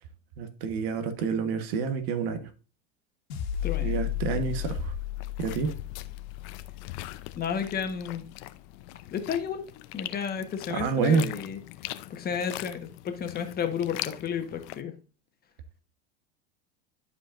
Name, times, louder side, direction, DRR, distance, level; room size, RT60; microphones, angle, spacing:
voice 1, 0.4-2.5 3.8-4.9 5.4-5.8 10.7-11.3, right 5 dB, 70° right, 1.3 m, -28 dB
sound 1, 3.3-7.9, left 13 dB, 85° left, 2.0 m, -34 dB
sound 2, 3.5-14.8, left 16 dB, 60° left, 0.6 m, -42 dB
voice 2, 3.6-4.0 7.3-8.2 9.1-9.7 9.9-11.6 12.1-14.9, left 7 dB, 30° left, 1.3 m, -32 dB
11.5 x 5.0 x 2.5 m
supercardioid pair, 115°, 31 cm